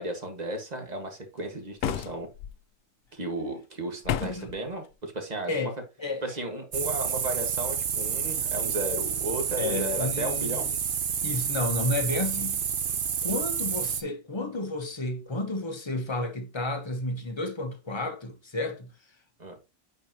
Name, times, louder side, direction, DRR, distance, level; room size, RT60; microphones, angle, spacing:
voice 1, 0.0-2.3 3.1-5.7 6.2-10.7 19.4-19.6, right 1 dB, 30° right, 1.7 m, -34 dB
sound 1, 1.8-2.5 4.0-4.6, left 10 dB, 70° left, 1.0 m, -31 dB
sound 2, 6.7-14.0, right 7 dB, 50° right, 0.7 m, -29 dB
voice 2, 9.6-10.5 11.2-12.6 13.2-18.9, left 2 dB, 20° left, 1.1 m, -31 dB
8.5 x 5.1 x 2.9 m
omnidirectional pair, 1.4 m